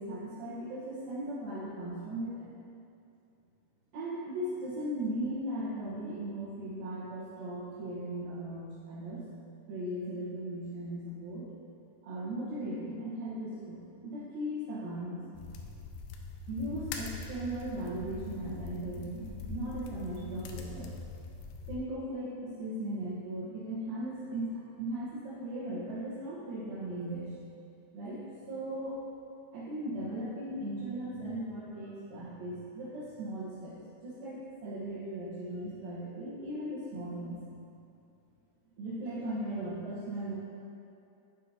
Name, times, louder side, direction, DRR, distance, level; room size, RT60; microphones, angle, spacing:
voice 1, 0.0-2.5 3.9-9.2 9.7-11.5 12.0-15.2 16.5-20.9 21.7-27.3 27.9-29.0 29.5-33.8 34.0-37.4 38.8-40.3, right 1 dB, 70° right, -10 dB, 3.0 m, -38 dB
sound 1, 15.3-21.8, left 4 dB, 90° left, 2.6 m, -42 dB
9.5 x 6.3 x 2.8 m, 2.6 s
omnidirectional pair, 4.5 m